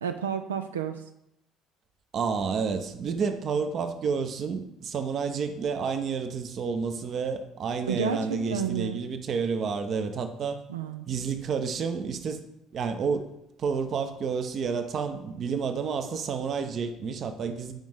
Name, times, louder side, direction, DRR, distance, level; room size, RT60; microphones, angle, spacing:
voice 1, 0.0-1.0 7.9-9.0 10.7-11.1, right 7 dB, 75° right, 8 dB, 0.4 m, -31 dB
voice 2, 2.1-10.6 11.1-12.4 12.7-13.3 13.6-17.7, right 5 dB, 45° right, 8 dB, 0.8 m, -30 dB
9.1 x 5.1 x 3.6 m, 0.83 s
figure-of-eight pair, 55°, 0 cm